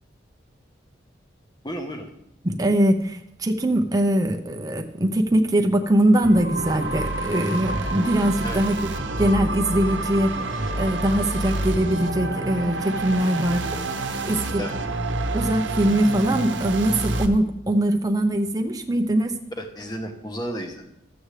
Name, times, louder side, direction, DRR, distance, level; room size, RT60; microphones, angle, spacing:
voice 1, 1.6-2.1 8.4-8.6 14.6-14.8 19.6-20.9, equal, 20° left, 4 dB, 1.1 m, -32 dB
voice 2, 2.4-8.8 9.2-10.3 10.8-13.7 14.2-14.6 15.3-19.3, right 1 dB, 20° right, 4 dB, 0.7 m, -22 dB
sound 1, 6.2-17.3, right 2 dB, 80° right, 0.9 m, -28 dB
13.0 x 7.9 x 3.3 m, 0.79 s
head